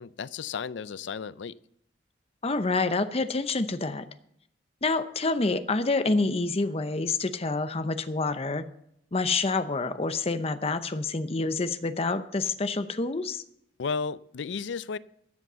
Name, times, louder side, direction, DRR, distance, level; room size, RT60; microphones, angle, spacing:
voice 1, 0.0-1.6 13.8-15.0, left 5 dB, 70° left, 0.4 m, -33 dB
voice 2, 2.4-4.0 4.8-8.7 9.1-13.4, left 3 dB, 30° left, 0.7 m, -27 dB
13.5 x 7.6 x 6.8 m
head